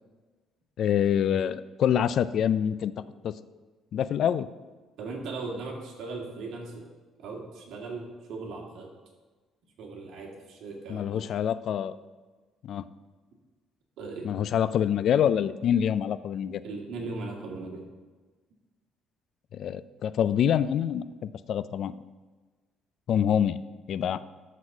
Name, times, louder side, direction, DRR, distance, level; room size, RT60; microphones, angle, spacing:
voice 1, 0.8-2.9 3.2-3.3 3.9-4.5 10.9-12.0 12.6-12.8 14.2-16.6 19.5-21.9 23.1-23.6 23.9-24.2, left 9 dB, 60° left, 15 dB, 0.4 m, -26 dB
voice 2, 5.0-6.8 7.2-8.9 9.8-11.2 14.0-14.3 16.6-17.8, right 3 dB, 75° right, -1 dB, 2.2 m, -38 dB
12.5 x 4.2 x 6.1 m, 1.3 s
cardioid pair, 115°, 0 cm